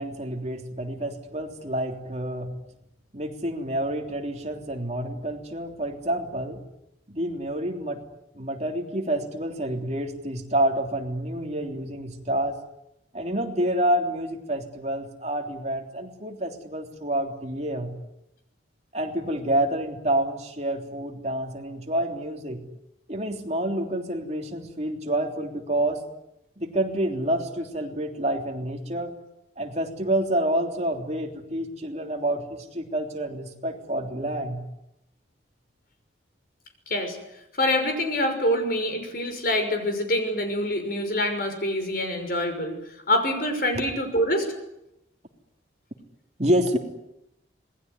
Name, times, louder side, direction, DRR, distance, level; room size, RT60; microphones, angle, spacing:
voice 1, 0.0-2.5 3.1-6.6 7.1-8.0 8.3-12.6 13.1-17.9 18.9-22.6 23.1-26.0 26.6-29.2 29.6-34.6 46.4-46.8, right 1 dB, 35° right, 3 dB, 3.3 m, -28 dB
voice 2, 36.9-37.2 37.6-42.8 43.1-44.5, left 1 dB, 50° left, 6 dB, 6.1 m, -25 dB
26.5 x 20.0 x 9.8 m, 0.84 s
head